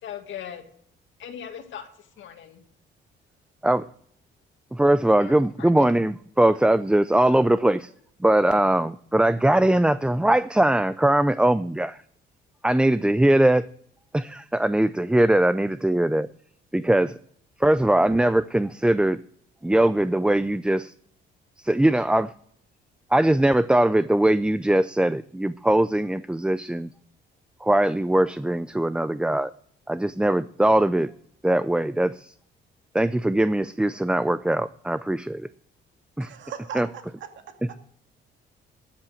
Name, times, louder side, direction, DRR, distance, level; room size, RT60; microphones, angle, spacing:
voice 1, 0.0-0.6 1.2-2.6 5.2-5.9, left 9 dB, 75° left, 6 dB, 2.0 m, -39 dB
voice 2, 4.7-7.9 8.2-12.0 12.6-13.7 14.1-16.3 16.7-17.2 17.6-19.2 19.6-20.9 21.6-22.3 23.1-26.9 27.6-29.5 29.9-31.1 31.4-32.3 32.9-35.5 36.2-36.3 36.8-36.9, right 1 dB, 5° right, 14 dB, 0.4 m, -21 dB
voice 3, 36.2-37.8, right 7 dB, 70° right, 5 dB, 2.1 m, -39 dB
12.5 x 7.3 x 6.4 m, 0.63 s
cardioid pair, 90°, 20 cm